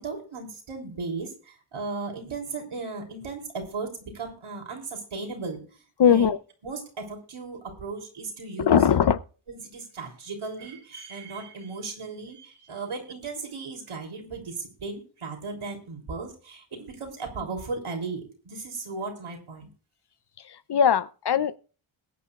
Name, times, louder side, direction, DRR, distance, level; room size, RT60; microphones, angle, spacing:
voice 1, 0.0-5.6 6.0-6.3 6.6-8.8 9.5-19.7, right 3 dB, 80° right, 3.6 m, -36 dB
voice 2, 6.0-6.4 8.6-9.2 20.5-21.6, left 8 dB, 55° left, 0.7 m, -20 dB
22.0 x 9.6 x 2.5 m
wide cardioid pair, 85°, 49 cm